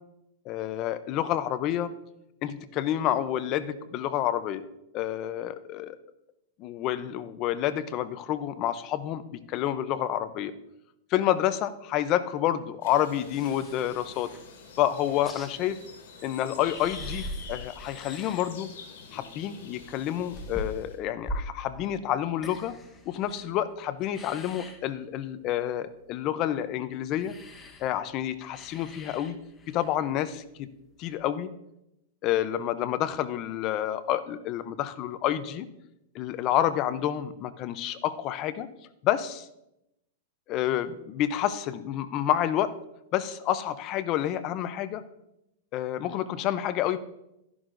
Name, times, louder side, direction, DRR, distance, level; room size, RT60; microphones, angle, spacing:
voice 1, 0.5-1.9 2.4-4.6 4.9-6.0 6.6-10.5 11.1-14.3 14.8-15.8 16.2-18.7 19.1-22.7 23.1-27.3 27.8-29.4 29.7-30.7 31.0-31.5 32.2-35.7 36.1-38.7 39.0-39.5 40.5-42.7 43.1-45.0 45.7-47.0, left 11 dB, 35° left, 13 dB, 0.6 m, -29 dB
sound 1, 12.8-21.0, left 5 dB, 70° left, 2.8 m, -47 dB
sound 2, 13.3-14.6 14.9-16.0 16.3-18.7 19.0-23.7 24.0-24.8 27.2-30.1 31.1-31.2, left 1 dB, 15° left, 1.1 m, -42 dB
13.0 x 11.0 x 2.6 m, 0.86 s
supercardioid pair, 145°, 0 cm